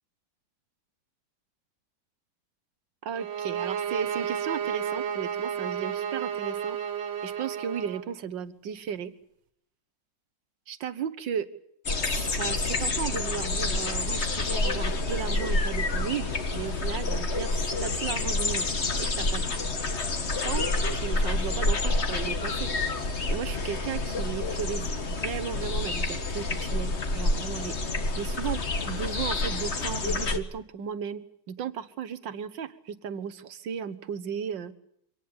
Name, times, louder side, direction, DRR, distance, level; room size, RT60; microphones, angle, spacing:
voice 1, 3.0-6.8 7.2-9.1 10.7-11.5 12.0-18.7 19.0-19.4 20.4-22.7 23.3-34.7, right 8 dB, 65° right, 13 dB, 1.8 m, -35 dB
sound 1, 3.2-8.1, right 8 dB, 90° right, 2.2 m, -32 dB
sound 2, 11.9-30.4, left 2 dB, 35° left, 1.6 m, -28 dB
25.0 x 18.5 x 8.7 m, 0.71 s
omnidirectional pair, 2.3 m